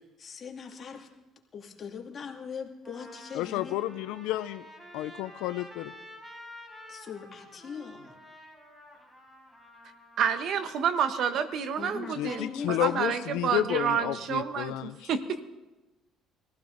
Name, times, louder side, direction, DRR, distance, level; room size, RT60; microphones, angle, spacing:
voice 1, 0.2-1.1 1.5-3.8 6.9-8.2 11.8-13.1, left 6 dB, 40° left, 2 dB, 2.3 m, -40 dB
Trumpet, 2.1-2.2 2.8-10.8, equal, 15° right, 4.3 m, -50 dB
voice 2, 3.3-4.7 4.9-5.9 12.2-15.1, left 15 dB, 85° left, 13 dB, 0.5 m, -31 dB
voice 3, 10.2-15.4, right 7 dB, 60° right, 11 dB, 1.2 m, -29 dB
22.0 x 15.5 x 3.9 m, 1.1 s
cardioid pair, 95°, 0 cm